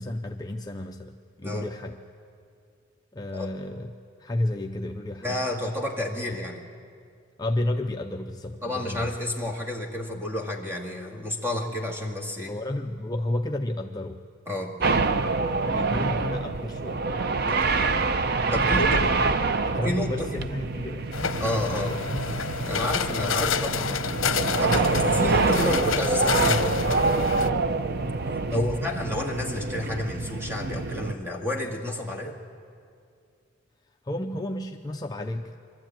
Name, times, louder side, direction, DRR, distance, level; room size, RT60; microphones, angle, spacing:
voice 1, 0.0-2.0 3.1-3.9 4.2-5.4 6.3-6.4 7.4-9.1 12.5-14.2 14.9-17.0 18.5-19.0 19.6-21.1 25.0-25.2 28.5-28.8 34.0-35.5, left 1 dB, 20° left, 3 dB, 0.5 m, -32 dB
voice 2, 5.2-6.6 8.6-12.6 14.5-15.0 17.5-17.7 18.5-19.2 19.8-20.3 21.4-21.9 22.6-24.1 24.6-26.8 28.5-32.4, left 1 dB, 10° right, 1 dB, 1.9 m, -30 dB
sound 1, 14.8-31.1, right 3 dB, 50° right, 0.6 m, -26 dB
sound 2, 21.1-27.5, left 6 dB, 75° left, 0.7 m, -29 dB
23.5 x 12.5 x 8.8 m, 2.4 s
head